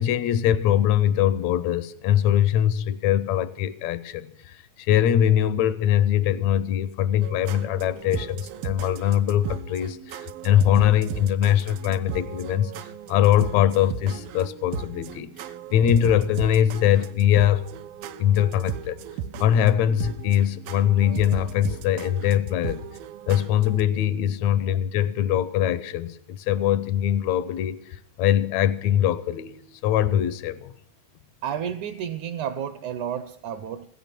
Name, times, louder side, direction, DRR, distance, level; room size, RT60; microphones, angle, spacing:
voice 1, 0.0-12.7 13.1-15.3 15.7-17.6 18.2-19.0 19.4-22.8 23.3-30.7, left 10 dB, 85° left, 1.6 m, -22 dB
sound 1, 7.2-23.8, right 8 dB, 90° right, 2.6 m, -36 dB
voice 2, 31.4-33.9, right 9 dB, 70° right, 1.9 m, -31 dB
16.5 x 12.5 x 6.0 m
omnidirectional pair, 4.0 m